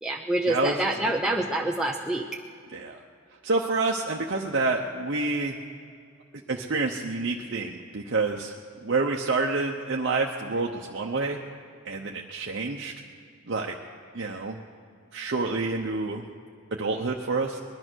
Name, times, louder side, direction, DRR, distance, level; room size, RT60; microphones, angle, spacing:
voice 1, 0.0-2.4, right 1 dB, 5° right, -1 dB, 0.5 m, -27 dB
voice 2, 2.7-3.0 3.4-5.6 6.5-8.5 8.8-11.4 11.8-12.9 13.5-13.7 14.1-14.6 15.1-16.2 16.8-17.6, right 3 dB, 60° right, 0 dB, 0.8 m, -28 dB
20.5 x 11.5 x 6.3 m, 2.3 s
head